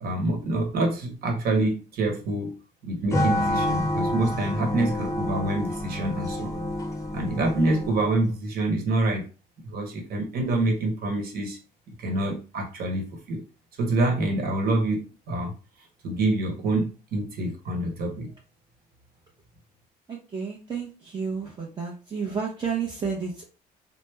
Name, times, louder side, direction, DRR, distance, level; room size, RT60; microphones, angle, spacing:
voice 1, 0.0-2.5 2.8-6.6 7.1-9.2 9.6-11.6 11.9-13.4 13.8-15.5 16.0-18.3, right 2 dB, 60° right, 2 dB, 1.1 m, -26 dB
sound 1, 3.1-8.2, left 1 dB, 20° left, 0.6 m, -28 dB
voice 2, 20.1-23.5, right 6 dB, 25° right, -1 dB, 0.7 m, -31 dB
3.2 x 2.0 x 3.3 m, 0.34 s
cardioid pair, 110°, 17 cm